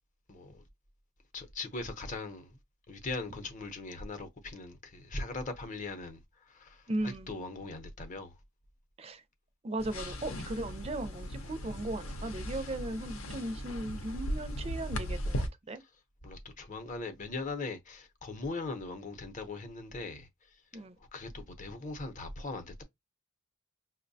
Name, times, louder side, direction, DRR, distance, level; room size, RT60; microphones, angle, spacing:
voice 1, 0.3-0.6 1.3-2.6 2.9-8.4 16.2-20.8 21.1-22.8, left 3 dB, 35° left, 0.7 m, -40 dB
voice 2, 6.9-7.3 9.0-9.2 9.6-15.8 20.7-21.0, right 1 dB, 30° right, 0.4 m, -37 dB
sound 1, 9.8-15.5, equal, 75° left, 0.7 m, -37 dB
5.3 x 2.1 x 2.6 m
head